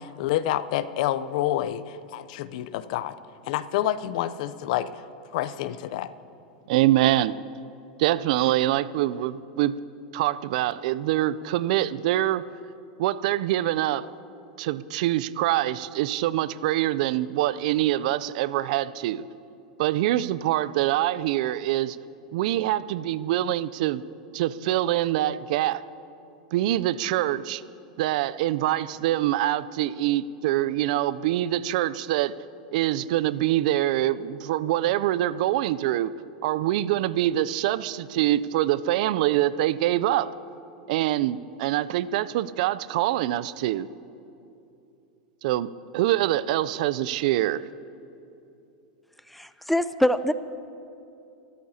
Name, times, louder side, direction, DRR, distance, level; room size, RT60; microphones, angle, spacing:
voice 1, 0.0-3.2 3.5-5.0 5.3-6.1, left 12 dB, 65° left, 15 dB, 0.6 m, -28 dB
voice 2, 6.7-7.3 8.0-9.8 10.1-12.4 13.0-14.1 14.6-19.2 19.8-22.0 22.3-24.0 24.3-25.8 26.5-27.6 28.0-32.3 32.7-36.1 36.4-40.3 40.9-43.9 45.4-45.7 45.9-47.6, right 14 dB, 65° right, 17 dB, 0.4 m, -24 dB
voice 3, 49.3-50.3, left 1 dB, ahead, 13 dB, 0.5 m, -24 dB
24.5 x 13.5 x 2.8 m, 2.7 s
hypercardioid pair, 105°, 5 cm